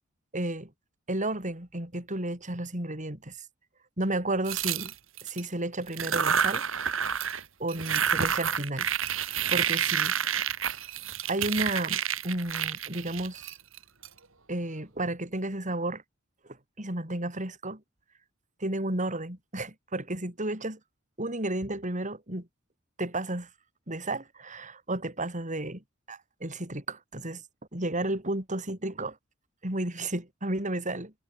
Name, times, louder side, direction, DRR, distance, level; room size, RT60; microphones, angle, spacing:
voice 1, 0.3-0.7 1.1-3.4 4.0-4.9 5.2-6.6 7.6-8.9 9.5-10.4 11.3-13.6 14.5-16.0 16.4-17.8 18.6-20.8 21.2-22.5 23.0-23.5 23.9-27.4 27.7-29.2 29.6-31.1, right 1 dB, 35° right, 6.2 m, -32 dB
sound 1, 4.4-5.4 5.9-7.4 7.7-14.1, right 8 dB, 70° right, 4.1 m, -29 dB
head